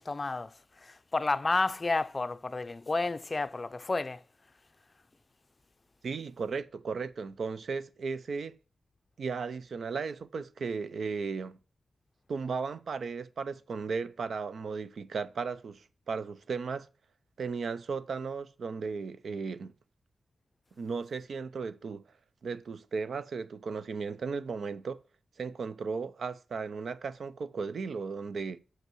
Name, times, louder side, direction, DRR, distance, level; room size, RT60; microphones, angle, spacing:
voice 1, 0.0-4.2, left 3 dB, 35° left, 0.5 m, -31 dB
voice 2, 6.0-8.5 9.2-11.5 12.3-16.9 17.4-19.7 20.8-22.0 22.4-25.0 25.4-28.6, right 5 dB, 70° right, 0.6 m, -35 dB
5.9 x 5.4 x 6.1 m
wide cardioid pair, 100°, 0 cm